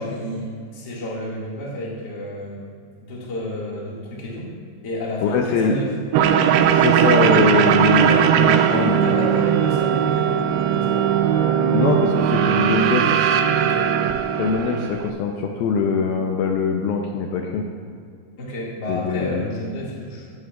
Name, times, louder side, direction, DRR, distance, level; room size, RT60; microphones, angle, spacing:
voice 1, 0.0-2.6 3.0-4.6 4.8-5.9 8.7-11.0 13.6-13.9 18.4-20.3, left 1 dB, 35° left, -5 dB, 1.8 m, -31 dB
voice 2, 5.2-5.8 6.7-9.4 11.7-13.1 14.4-17.7 18.9-19.4, left 5 dB, 80° left, 2 dB, 2.4 m, -22 dB
sound 1, 6.1-15.1, right 9 dB, 85° right, 2.5 m, -18 dB
17.5 x 8.2 x 2.4 m, 2.3 s
omnidirectional pair, 4.6 m